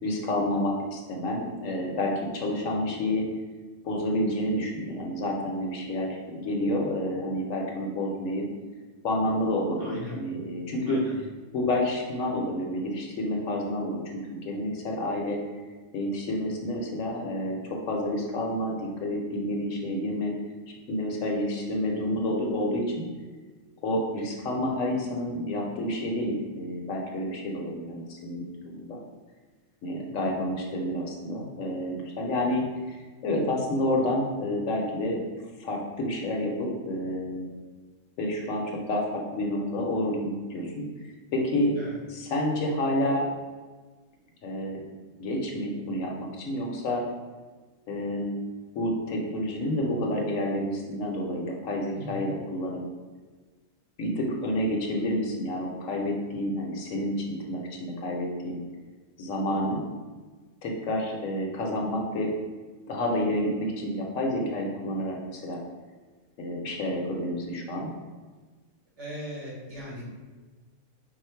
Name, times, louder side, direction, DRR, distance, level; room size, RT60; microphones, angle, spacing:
voice 1, 0.0-3.3 3.8-8.5 9.0-11.0 11.5-14.0 14.3-15.4 15.9-20.3 20.9-23.0 23.8-29.0 29.8-33.0 33.2-35.2 35.6-37.5 38.2-40.9 41.3-41.7 42.1-43.3 44.4-44.8 45.2-47.0 47.9-48.4 48.7-52.8 54.0-58.6 59.2-59.8 60.6-62.3 62.9-65.6 66.4-67.9, left 1 dB, 70° left, 0 dB, 1.0 m, -29 dB
voice 2, 9.8-10.2 10.9-11.1 41.8-41.9 51.9-52.3 69.0-70.1, equal, 55° right, -5 dB, 1.6 m, -39 dB
4.8 x 2.1 x 4.4 m, 1.4 s
omnidirectional pair, 1.5 m